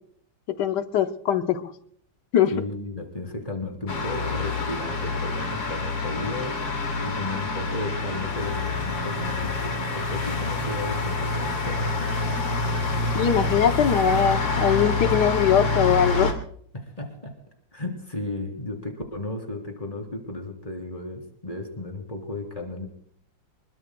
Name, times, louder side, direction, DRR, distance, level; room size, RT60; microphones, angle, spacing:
voice 1, 0.5-1.7 2.3-2.5 13.1-16.3, left 8 dB, 65° left, 8 dB, 1.4 m, -21 dB
voice 2, 2.5-6.6 7.0-12.4 16.7-17.4 17.7-22.9, left 2 dB, 20° left, 3 dB, 3.3 m, -34 dB
sound 1, 3.9-16.3, left 3 dB, 85° left, 3.2 m, -27 dB
26.5 x 21.5 x 2.2 m, 0.62 s
omnidirectional pair, 2.0 m